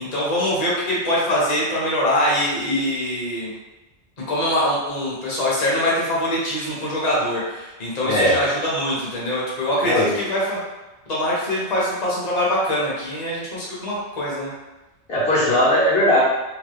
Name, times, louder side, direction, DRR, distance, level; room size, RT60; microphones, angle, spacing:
voice 1, 0.0-3.5 4.3-10.6 11.1-14.5, left 1 dB, 40° left, -7 dB, 0.8 m, -23 dB
voice 2, 8.0-8.3 9.8-10.1 15.1-16.2, left 1 dB, 60° left, -8 dB, 1.2 m, -18 dB
2.9 x 2.1 x 3.3 m, 1.1 s
omnidirectional pair, 1.2 m